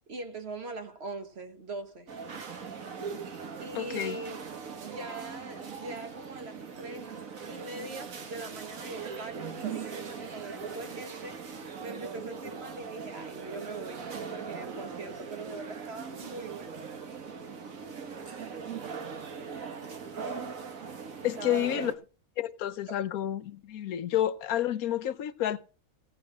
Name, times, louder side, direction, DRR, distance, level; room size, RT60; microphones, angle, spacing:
voice 1, 0.1-2.1 3.6-4.4 4.8-7.2 7.5-16.8 21.2-21.9 22.9-23.0, right 3 dB, 50° right, 1.5 m, -42 dB
sound 1, 2.1-21.9, right 5 dB, 70° right, 1.8 m, -40 dB
voice 2, 3.7-4.2 21.2-21.9 22.4-25.6, left 12 dB, 90° left, 1.2 m, -30 dB
16.0 x 5.9 x 5.5 m
omnidirectional pair, 1.5 m